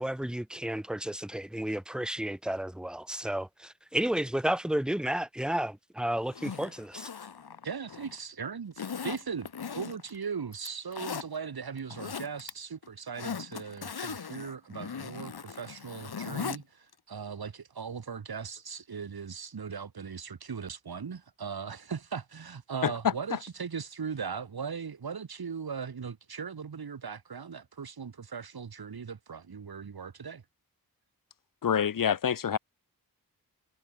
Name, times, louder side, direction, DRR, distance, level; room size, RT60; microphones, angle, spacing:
voice 1, 0.0-7.1, right 1 dB, ahead, 0.4 m, -32 dB
Zipper (clothing), 6.2-8.2 8.8-10.2 10.5-11.3 11.8-12.5 12.8-16.6 16.9-17.0, left 6 dB, 80° left, 3.7 m, -39 dB
voice 2, 7.6-30.4, right 6 dB, 75° right, 5.6 m, -39 dB
voice 3, 31.6-32.6, left 8 dB, 60° left, 0.9 m, -26 dB
wide cardioid pair, 135°, 37 cm